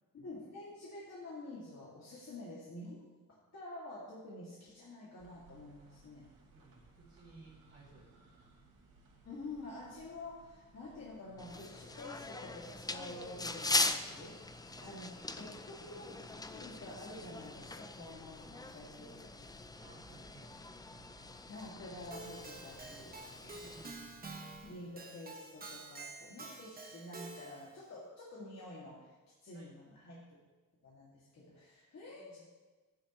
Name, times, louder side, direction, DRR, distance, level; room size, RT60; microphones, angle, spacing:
voice 1, 0.1-3.0 3.5-6.2 9.3-19.3 21.5-23.1 24.6-29.1 29.4-30.2 30.8-32.4, left 2 dB, 50° left, -7 dB, 2.3 m, -48 dB
sound 1, 5.2-24.7, right 2 dB, 85° right, 2.5 m, -63 dB
voice 2, 6.5-8.4 14.7-15.0 19.8-20.6 23.4-24.1 29.5-29.8 32.1-32.4, right 3 dB, 45° right, -10 dB, 3.1 m, -59 dB
sound 2, 11.4-23.9, left 3 dB, 10° left, 0.3 m, -41 dB
Keyboard (musical), 22.1-27.8, right 3 dB, 25° right, 1.2 m, -49 dB
14.0 x 10.0 x 3.1 m, 1.3 s
wide cardioid pair, 160°, 34 cm